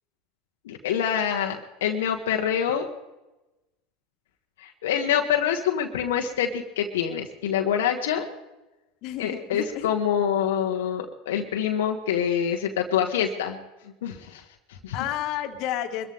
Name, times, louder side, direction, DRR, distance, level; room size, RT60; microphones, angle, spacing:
voice 1, 0.6-2.9 4.6-8.2 9.2-13.6 14.0-14.4 14.7-15.0, left 8 dB, 80° left, 2 dB, 1.5 m, -26 dB
voice 2, 9.0-9.9 14.9-16.1, left 11 dB, 60° left, 6 dB, 1.9 m, -31 dB
23.5 x 14.0 x 3.6 m, 1.0 s
hypercardioid pair, 95°, 0 cm